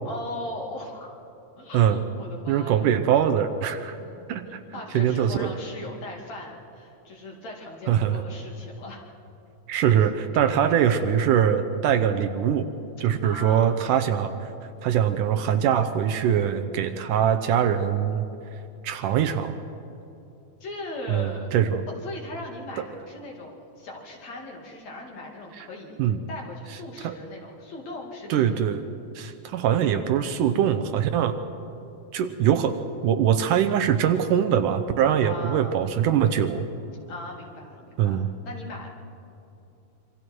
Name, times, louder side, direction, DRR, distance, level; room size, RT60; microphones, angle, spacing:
voice 1, 0.1-1.1 1.6-2.9 4.0-4.3 4.7-9.0 10.3-10.5 13.2-13.8 20.6-21.5 21.9-26.0 26.3-28.6 35.2-35.8 37.1-38.9, left 2 dB, 50° left, 0 dB, 3.7 m, -39 dB
voice 2, 2.5-4.0 4.3-4.6 4.9-5.5 7.9-8.2 9.7-12.7 13.0-14.5 14.8-18.3 18.8-19.6 21.1-21.8 25.6-25.7 26.0-26.2 27.0-27.2 28.3-28.8 29.2-31.4 32.1-32.8 33.0-36.6 38.0-38.3, right 9 dB, 75° right, 9 dB, 2.1 m, -22 dB
26.5 x 25.5 x 4.6 m, 2.8 s
omnidirectional pair, 4.2 m